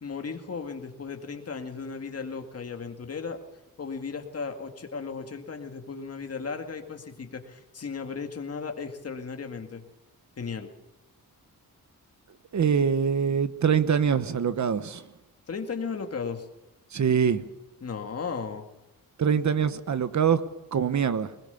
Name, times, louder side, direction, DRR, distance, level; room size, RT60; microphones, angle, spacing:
voice 1, 0.0-3.4 3.8-9.8 10.4-10.7 15.5-16.5 17.8-18.7, left 5 dB, 45° left, 2.2 m, -35 dB
voice 2, 12.5-15.0 16.9-17.4 19.2-20.4 20.7-21.3, right 7 dB, 55° right, 1.1 m, -24 dB
20.5 x 20.5 x 7.1 m
wide cardioid pair, 160°, 35 cm